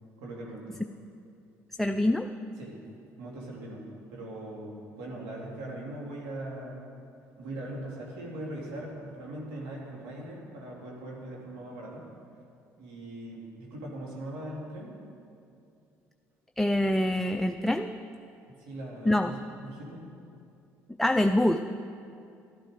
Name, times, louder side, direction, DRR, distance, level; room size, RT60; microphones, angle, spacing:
voice 1, 0.2-0.7 2.6-2.8 3.2-3.8 4.1-6.9 7.4-12.1 12.8-15.0 18.5-20.1, right 1 dB, 85° right, -3 dB, 2.8 m, -40 dB
voice 2, 1.8-2.3 16.6-17.9 19.1-19.3 21.0-21.6, left 1 dB, 5° left, 6 dB, 0.5 m, -25 dB
12.5 x 11.5 x 5.1 m, 2.5 s
supercardioid pair, 70°, 7 cm